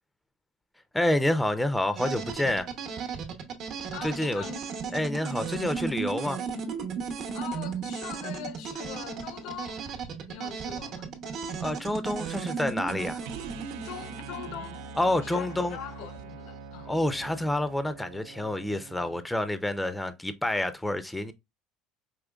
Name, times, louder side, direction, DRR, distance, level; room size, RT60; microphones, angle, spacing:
voice 1, 0.9-2.7 4.0-4.4 4.9-6.4 11.6-13.2 15.0-15.8 16.9-21.3, left 1 dB, 5° left, 0.5 m, -28 dB
sound 1, 2.0-15.9, right 6 dB, 55° right, 0.9 m, -36 dB
voice 2, 3.9-4.6 7.3-9.8 10.3-11.1 13.8-16.9, left 10 dB, 70° left, 0.6 m, -42 dB
sound 2, 13.2-19.3, right 4 dB, 80° right, 0.4 m, -44 dB
5.0 x 3.0 x 2.3 m
supercardioid pair, 115°, 0 cm